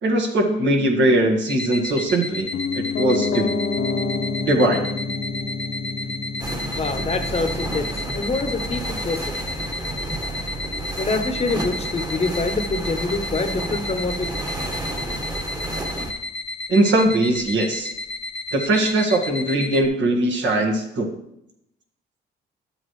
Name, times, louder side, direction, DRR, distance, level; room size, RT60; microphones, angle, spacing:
voice 1, 0.0-2.5 2.7-3.6 4.4-4.8 16.7-17.9 18.5-21.1, right 1 dB, 70° right, 2 dB, 1.7 m, -20 dB
sound 1, 1.5-19.9, left 2 dB, 5° left, 0.8 m, -32 dB
Piano, 2.5-12.5 12.8-12.9, left 4 dB, 60° left, 0.9 m, -30 dB
sound 2, 6.4-16.1, right 2 dB, 20° right, 1.4 m, -31 dB
voice 2, 6.7-9.3 11.0-14.2, left 3 dB, 30° left, 8 dB, 0.9 m, -26 dB
11.0 x 7.5 x 3.2 m, 0.79 s
cardioid pair, 90°, 20 cm